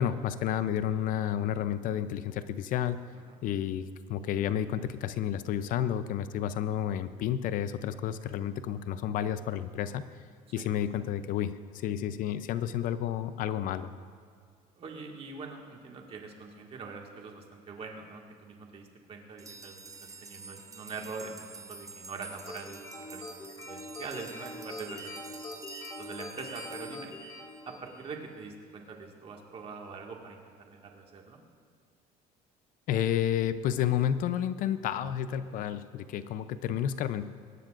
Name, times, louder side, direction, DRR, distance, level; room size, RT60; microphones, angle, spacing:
voice 1, 0.0-3.0 3.4-10.0 10.5-13.9 32.9-37.3, left 10 dB, 60° left, 12 dB, 0.6 m, -31 dB
voice 2, 14.8-19.9 20.2-25.5 26.0-27.2 27.7-31.4, right 4 dB, 40° right, 1 dB, 1.9 m, -43 dB
sound 1, 19.4-27.9, right 4 dB, 20° right, 0.9 m, -49 dB
sound 2, 22.5-28.2, left 2 dB, 25° left, 2.3 m, -43 dB
21.0 x 17.5 x 2.5 m, 2.1 s
cardioid pair, 140°, 16 cm